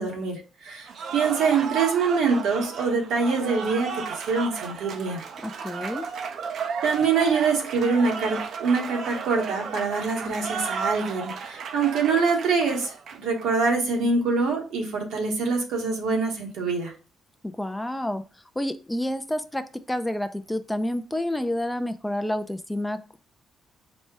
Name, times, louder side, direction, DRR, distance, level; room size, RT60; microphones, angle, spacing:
voice 1, 0.0-5.2 6.8-16.9, right 4 dB, 85° right, 1.1 m, -25 dB
Cheering / Applause, 0.9-13.5, right 6 dB, 65° right, 0.5 m, -34 dB
voice 2, 5.4-6.1 17.4-18.2 18.6-23.2, left 1 dB, 10° left, 0.4 m, -29 dB
4.2 x 2.2 x 4.6 m
cardioid pair, 90°, 0 cm